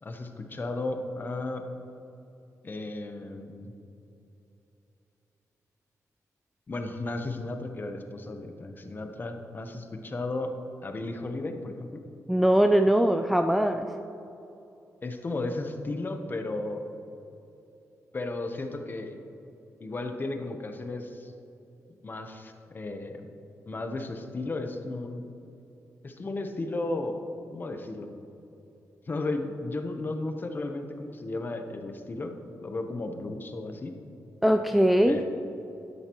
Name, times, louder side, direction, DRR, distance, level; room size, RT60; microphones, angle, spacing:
voice 1, 0.0-1.6 2.6-3.7 6.7-10.6 10.8-12.0 15.0-16.9 18.1-19.2 19.8-21.3 22.0-23.3 23.7-25.2 26.0-27.2 27.5-28.1 29.1-32.3 32.6-33.9 35.0-35.2, left 2 dB, 35° left, 5 dB, 0.9 m, -34 dB
voice 2, 12.3-13.9 34.4-35.2, equal, ahead, 6 dB, 0.3 m, -21 dB
12.5 x 9.7 x 3.0 m, 2.9 s
wide cardioid pair, 110°, 6 cm